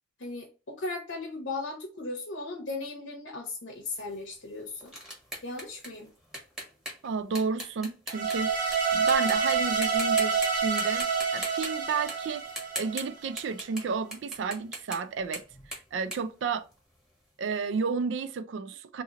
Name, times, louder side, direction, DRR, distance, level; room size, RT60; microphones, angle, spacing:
voice 1, 0.2-4.9 5.4-6.1, left 3 dB, 80° left, 0.8 m, -37 dB
sound 1, 3.9-8.8 9.1-9.5 9.8-10.5 10.8-17.1, equal, 5° right, 1.2 m, -40 dB
voice 2, 7.0-8.5 8.9-12.4 12.7-16.7 17.4-19.0, right 5 dB, 70° right, 0.4 m, -32 dB
sound 2, 8.1-13.3, right 5 dB, 45° right, 0.9 m, -28 dB
2.8 x 2.6 x 3.8 m
head